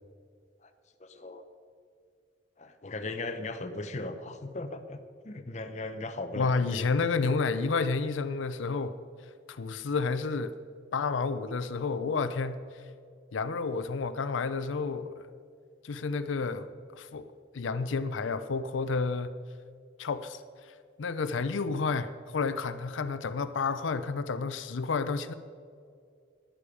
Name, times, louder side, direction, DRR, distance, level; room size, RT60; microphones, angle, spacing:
voice 1, 1.0-1.4 2.6-5.0 5.2-6.9, left 2 dB, 35° left, 8 dB, 0.7 m, -38 dB
voice 2, 6.4-9.0 9.5-10.6 10.9-12.8 13.3-15.3 15.8-16.7 16.9-17.3 17.5-19.3 20.0-20.4 20.7-25.3, left 4 dB, 85° left, 12 dB, 0.5 m, -30 dB
11.5 x 10.0 x 5.0 m, 2.2 s
head